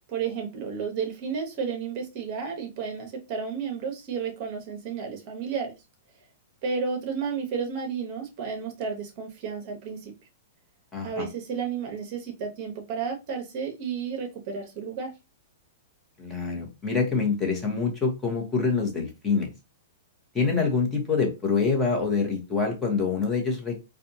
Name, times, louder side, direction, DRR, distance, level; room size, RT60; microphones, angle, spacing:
voice 1, 0.1-5.7 6.6-10.1 11.0-15.1, right 6 dB, 40° right, 2 dB, 1.0 m, -32 dB
voice 2, 10.9-11.3 16.2-19.5 20.3-23.8, left 4 dB, 10° left, 1 dB, 1.1 m, -26 dB
4.2 x 2.4 x 2.7 m, 0.26 s
hypercardioid pair, 155°, 0 cm